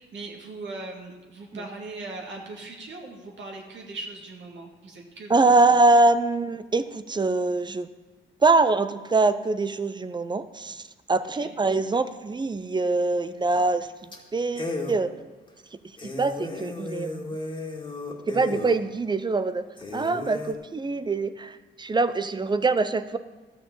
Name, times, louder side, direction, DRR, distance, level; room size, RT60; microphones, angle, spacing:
voice 1, 0.0-5.8 11.2-11.6, right 2 dB, 65° right, -1 dB, 2.3 m, -40 dB
voice 2, 5.3-7.9 8.4-10.8 11.1-15.1 16.0-17.4 18.3-19.7 19.9-23.2, right 3 dB, 20° right, 12 dB, 0.7 m, -23 dB
sound 1, 13.5-13.8 14.1-14.2 14.6-15.0 15.5-15.6 16.0-18.8 19.3-19.4 19.8-20.5, left 2 dB, 25° left, 2.1 m, -34 dB
12.5 x 6.5 x 7.1 m, 1.2 s
cardioid pair, 90°, 20 cm